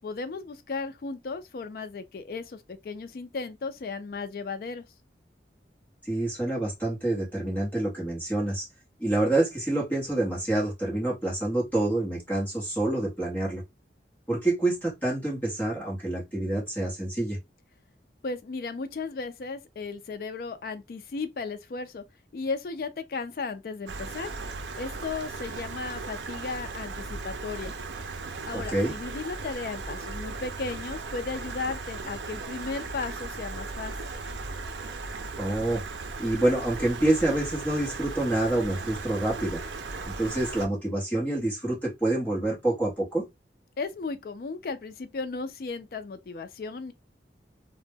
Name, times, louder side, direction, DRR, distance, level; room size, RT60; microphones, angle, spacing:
voice 1, 0.0-4.9 18.2-22.0 22.3-24.3 24.8-27.7 28.5-33.9 43.8-46.9, left 4 dB, 55° left, 0.3 m, -35 dB
voice 2, 6.0-8.7 9.0-13.6 14.3-17.4 28.5-28.9 35.4-35.8 36.2-39.6 40.0-43.2, right 1 dB, 10° left, 0.8 m, -27 dB
Stream, 23.9-40.7, right 3 dB, 85° right, 0.4 m, -37 dB
2.1 x 2.0 x 3.2 m
head